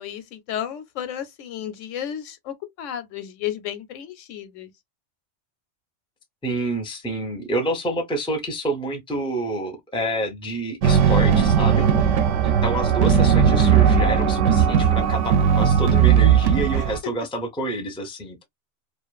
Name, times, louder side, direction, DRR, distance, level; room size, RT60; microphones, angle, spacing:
voice 1, 0.0-4.7 11.7-12.3 16.7-16.9, left 10 dB, 85° left, 1.0 m, -33 dB
voice 2, 6.4-11.8 12.4-18.4, right 1 dB, 5° left, 0.5 m, -28 dB
sound 1, 10.8-17.0, right 8 dB, 80° right, 0.9 m, -17 dB
2.5 x 2.4 x 2.3 m
omnidirectional pair, 1.2 m